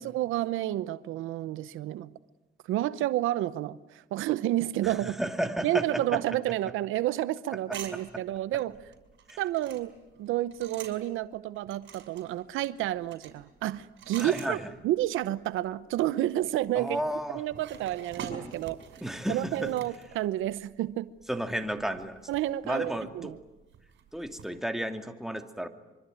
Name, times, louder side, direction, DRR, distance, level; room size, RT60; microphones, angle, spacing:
voice 1, 0.0-2.1 2.7-5.2 5.6-8.7 9.4-9.9 10.2-17.0 17.3-18.8 19.3-21.1 22.3-23.4, right 14 dB, 90° right, 15 dB, 0.9 m, -30 dB
voice 2, 4.8-6.2 7.7-7.8 8.1-8.2 9.3-9.4 14.2-14.7 16.7-17.4 19.0-19.8 21.3-22.2 22.6-23.3 24.1-25.7, equal, ahead, 5 dB, 2.7 m, -33 dB
sound 1, 7.7-11.2 11.5-15.2 15.5-15.7 16.4-20.7 21.2-24.6, right 7 dB, 70° right, 5.8 m, -46 dB
25.0 x 25.0 x 9.3 m, 1.1 s
cardioid pair, 90°, 20 cm